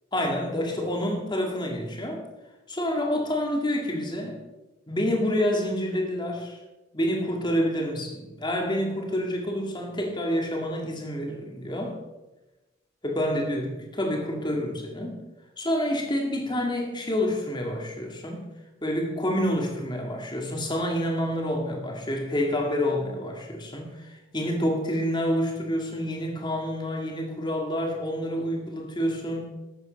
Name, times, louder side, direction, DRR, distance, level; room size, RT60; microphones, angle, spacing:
voice 1, 0.1-2.2 2.7-4.4 4.9-6.6 6.9-12.0 13.0-15.2 15.6-18.4 18.8-29.5, equal, 20° left, 1 dB, 2.0 m, -28 dB
12.0 x 8.3 x 5.1 m, 1.1 s
head